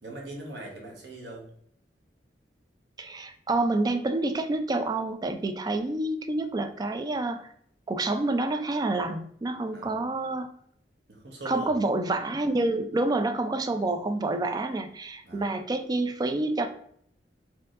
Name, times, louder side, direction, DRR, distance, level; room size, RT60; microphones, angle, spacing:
voice 1, 0.0-1.5 9.7-9.9 11.1-11.7 15.2-15.5, right 2 dB, 75° right, 0 dB, 1.0 m, -41 dB
voice 2, 3.0-7.4 7.9-10.5 11.5-16.7, right 2 dB, 25° right, 8 dB, 0.3 m, -28 dB
4.5 x 2.7 x 2.4 m, 0.65 s
head